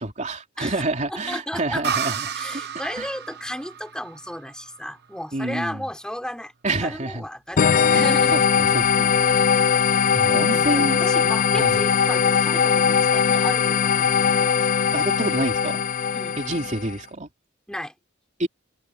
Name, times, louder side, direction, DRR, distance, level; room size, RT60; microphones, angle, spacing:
voice 1, 0.0-2.6 3.0-3.1 5.3-5.8 6.6-7.2 7.9-9.5 10.1-11.8 14.9-15.8 16.4-17.3 18.4-18.5, right 2 dB, 35° right, 3.3 m, -28 dB
voice 2, 1.1-1.8 2.4-6.5 6.8-8.4 10.5-14.7 16.1-16.4 17.7-17.9, equal, 5° left, 3.8 m, -34 dB
sound 1, 1.8-5.4, right 7 dB, 55° right, 1.0 m, -32 dB
sound 2, 7.6-16.9, left 7 dB, 40° left, 0.4 m, -20 dB
head